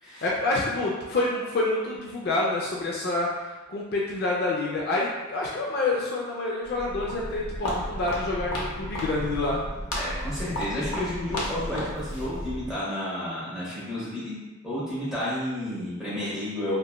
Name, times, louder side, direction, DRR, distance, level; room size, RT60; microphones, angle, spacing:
voice 1, 0.2-3.3 3.7-9.6, left 2 dB, 45° left, -3 dB, 0.3 m, -27 dB
Walk footsteps, 6.6-12.8, left 1 dB, 85° left, 0.7 m, -33 dB
voice 2, 9.9-14.3 14.6-16.8, left 1 dB, 5° right, -10 dB, 0.8 m, -31 dB
2.9 x 2.2 x 2.2 m, 1.1 s
head